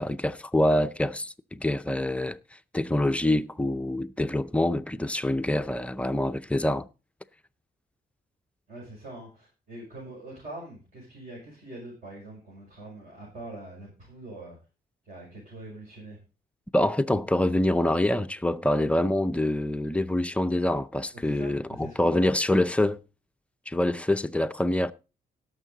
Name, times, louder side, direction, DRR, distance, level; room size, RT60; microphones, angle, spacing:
voice 1, 0.0-2.4 2.7-6.9 16.7-23.0 23.7-24.9, left 1 dB, 5° left, 0.5 m, -25 dB
voice 2, 8.7-14.6 15.0-16.2 21.2-22.4, right 2 dB, 50° right, 5.8 m, -43 dB
17.5 x 6.6 x 3.9 m
cardioid pair, 115°, 17 cm